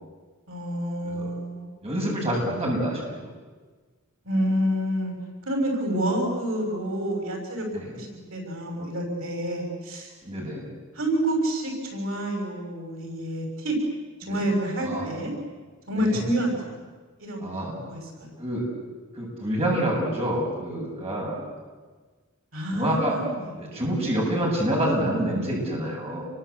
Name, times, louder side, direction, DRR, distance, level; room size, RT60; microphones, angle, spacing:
voice 1, 0.5-1.7 4.2-5.1 5.4-7.7 7.9-10.1 10.9-13.8 14.3-15.3 15.9-16.8 17.2-18.3 22.5-23.4, right 1 dB, 70° right, 2 dB, 6.5 m, -28 dB
voice 2, 1.8-3.3 7.7-7.9 10.2-10.7 14.2-14.4 14.8-15.2 16.0-16.3 17.4-17.7 18.4-18.7 19.1-21.4 22.7-23.2 23.5-26.3, right 1 dB, 30° right, -2 dB, 7.8 m, -27 dB
28.5 x 23.5 x 8.3 m, 1.4 s
head